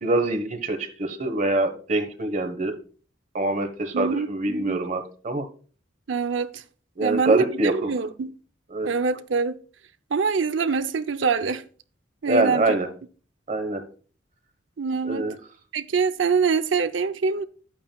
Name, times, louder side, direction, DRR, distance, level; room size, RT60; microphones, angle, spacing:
voice 1, 0.0-2.8 3.3-5.4 7.0-7.9 8.7-8.9 12.3-12.9 13.5-13.8 15.0-15.4, right 2 dB, 40° right, 1.2 m, -24 dB
voice 2, 3.9-4.8 6.1-6.6 7.0-8.3 8.8-9.6 10.1-11.6 12.2-12.7 14.8-15.3 15.7-17.4, right 5 dB, 85° right, 0.6 m, -25 dB
10.5 x 8.6 x 2.3 m
head